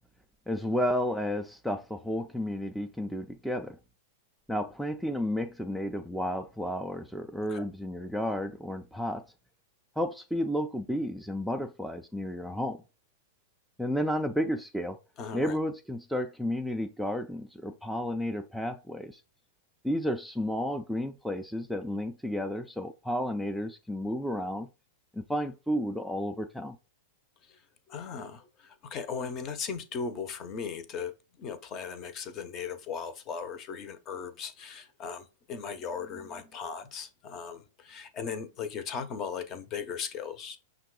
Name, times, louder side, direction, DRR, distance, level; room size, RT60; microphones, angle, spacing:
voice 1, 0.5-3.8 4.5-9.2 10.0-12.8 13.8-15.0 15.3-19.2 19.8-24.7 25.1-26.8, equal, ahead, 0.4 m, -32 dB
voice 2, 15.2-15.6 27.4-27.6 27.9-40.6, left 6 dB, 35° left, 0.7 m, -38 dB
5.8 x 2.4 x 3.7 m
hypercardioid pair, 105°, 0 cm